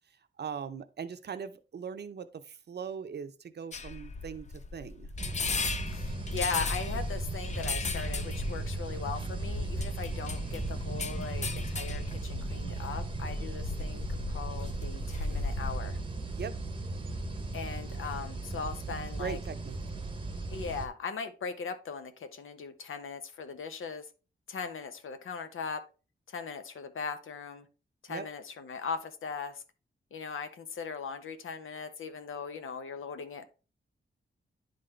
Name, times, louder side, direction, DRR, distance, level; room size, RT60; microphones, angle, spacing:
voice 1, 0.4-5.1 16.4-16.6 19.2-19.8 28.1-28.3, right 7 dB, 55° right, 10 dB, 0.6 m, -40 dB
sound 1, 3.7-15.8, left 3 dB, 35° left, 0.5 m, -36 dB
sound 2, 5.2-20.9, right 3 dB, 25° right, 0.8 m, -37 dB
voice 2, 5.9-16.0 17.5-19.4 20.5-24.1 24.5-25.8 26.3-27.7 28.0-29.6 30.1-33.5, left 5 dB, 85° left, 9 dB, 0.9 m, -39 dB
10.0 x 3.9 x 3.2 m, 0.33 s
wide cardioid pair, 140°, 20 cm